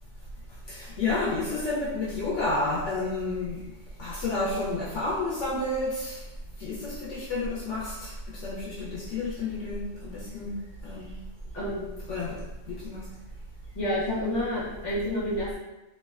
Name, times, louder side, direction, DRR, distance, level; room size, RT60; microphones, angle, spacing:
voice 1, 0.7-3.6 4.0-6.2 6.6-10.5 10.8-11.1 12.1-12.4 12.7-13.0, left 2 dB, 70° left, -7 dB, 0.9 m, -30 dB
voice 2, 11.5-11.9 13.7-15.6, left 1 dB, 35° left, -9 dB, 1.1 m, -29 dB
2.6 x 2.1 x 2.3 m, 1.0 s
omnidirectional pair, 1.3 m